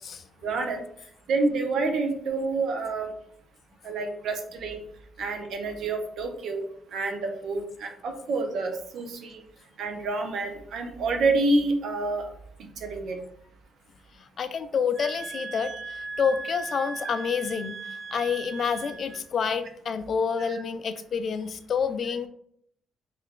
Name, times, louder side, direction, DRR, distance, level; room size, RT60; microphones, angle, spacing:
voice 1, 0.4-0.8 1.3-3.1 3.8-4.8 5.2-6.6 6.9-9.4 9.8-12.3 12.8-13.2 20.4-20.6, right 3 dB, 70° right, 4 dB, 0.7 m, -28 dB
voice 2, 14.4-17.8 18.1-22.3, left 6 dB, 55° left, 10 dB, 0.3 m, -28 dB
sound 1, 14.9-19.2, right 3 dB, 30° right, 0.5 m, -38 dB
3.2 x 2.3 x 3.6 m, 0.67 s
cardioid pair, 90°, 0 cm